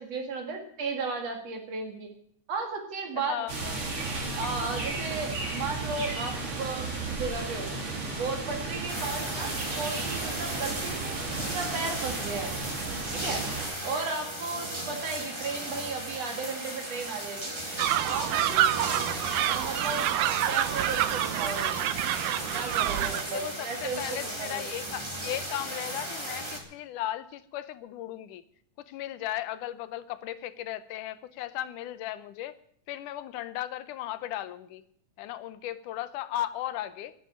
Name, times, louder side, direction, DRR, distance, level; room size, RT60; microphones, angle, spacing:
voice 1, 0.0-2.1 2.5-3.4 4.4-11.2 11.5-12.5 13.1-13.5 13.8-17.6 18.1-20.1 20.5-21.8 22.5-24.6, right 4 dB, 55° right, 4 dB, 3.1 m, -35 dB
voice 2, 3.2-3.8 9.1-9.2 18.9-19.1 23.3-28.4 28.9-32.6 32.9-34.8 35.2-37.1, left 13 dB, 80° left, 14 dB, 2.3 m, -36 dB
sound 1, 3.5-13.7, right 3 dB, 40° right, 3.4 m, -34 dB
sound 2, 8.9-26.6, right 1 dB, 10° right, 1.6 m, -36 dB
sound 3, 17.8-23.2, right 13 dB, 85° right, 2.2 m, -27 dB
11.0 x 9.6 x 9.8 m, 0.65 s
omnidirectional pair, 3.7 m